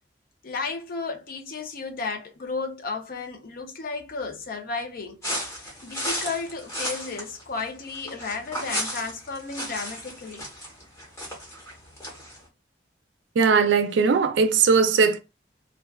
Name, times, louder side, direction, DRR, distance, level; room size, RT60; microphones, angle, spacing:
voice 1, 0.4-5.2 5.8-10.5, left 4 dB, 55° left, 0.5 m, -33 dB
sound 1, 5.2-12.4, equal, 15° left, 1.1 m, -34 dB
voice 2, 13.4-15.2, right 5 dB, 80° right, 0.4 m, -19 dB
2.4 x 2.3 x 2.2 m
head